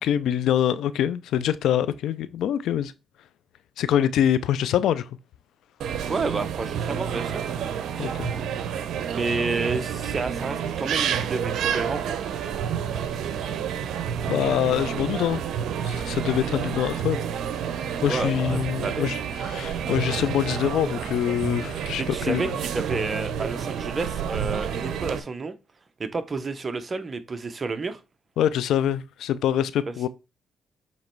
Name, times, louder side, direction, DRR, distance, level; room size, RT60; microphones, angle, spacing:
voice 1, 0.0-2.9 3.8-5.1 8.0-8.3 14.3-15.4 15.8-17.2 17.6-17.7 18.0-19.2 19.5-22.5 28.4-30.1, left 10 dB, 80° left, 0.5 m, -24 dB
sound 1, 5.8-25.2, right 8 dB, 75° right, 0.7 m, -29 dB
voice 2, 6.1-7.4 9.1-12.2 18.1-19.1 22.0-25.6 26.0-28.0 29.9-30.0, right 3 dB, 35° right, 0.9 m, -30 dB
7.4 x 3.1 x 4.5 m
cardioid pair, 90°, 0 cm